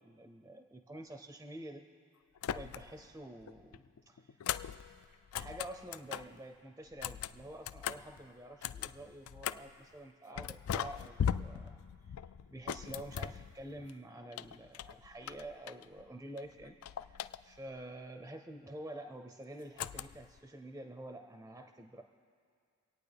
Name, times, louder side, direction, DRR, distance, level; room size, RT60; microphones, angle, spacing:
voice 1, 0.0-1.8 2.5-4.4 5.3-12.2 12.5-16.8 17.1-22.0, right 1 dB, 10° right, 5 dB, 0.4 m, -48 dB
sound 1, 2.4-3.1 3.4-6.4 6.9-9.8 10.4-13.9 14.3-16.1 16.4-17.8 19.8-20.4, left 8 dB, 85° left, 0.3 m, -40 dB
26.0 x 9.1 x 3.4 m, 2.2 s
head